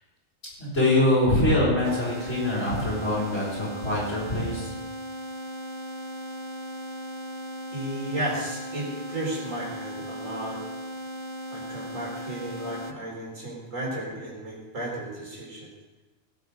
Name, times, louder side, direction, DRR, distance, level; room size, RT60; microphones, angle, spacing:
voice 1, 0.6-4.7, left 1 dB, 60° left, -8 dB, 5.6 m, -24 dB
sound 1, 1.8-12.9, equal, 30° right, 0.5 m, -37 dB
voice 2, 7.7-10.6 11.5-15.7, right 1 dB, 70° right, -2 dB, 4.4 m, -34 dB
17.5 x 8.2 x 5.2 m, 1.2 s
omnidirectional pair, 1.4 m